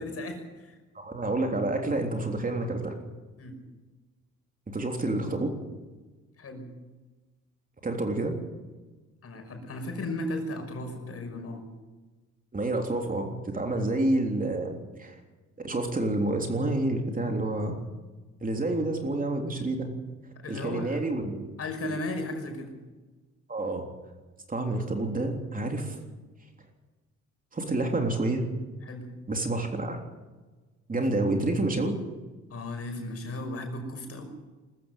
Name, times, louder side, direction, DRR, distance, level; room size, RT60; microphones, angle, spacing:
voice 1, 0.0-0.8 3.4-3.6 6.4-6.7 9.2-11.6 13.7-13.9 20.4-21.0 21.6-22.7 28.8-29.1 32.5-34.3, left 1 dB, 50° left, 4 dB, 5.9 m, -35 dB
voice 2, 0.9-2.9 4.7-5.5 7.8-8.3 12.5-15.2 15.6-17.8 18.4-19.9 20.5-21.5 21.9-22.0 23.5-23.9 24.5-26.0 27.5-28.5 29.3-30.0 30.9-31.9, right 2 dB, 25° right, 3 dB, 3.5 m, -28 dB
20.5 x 14.0 x 9.3 m, 1.3 s
cardioid pair, 90°, 30 cm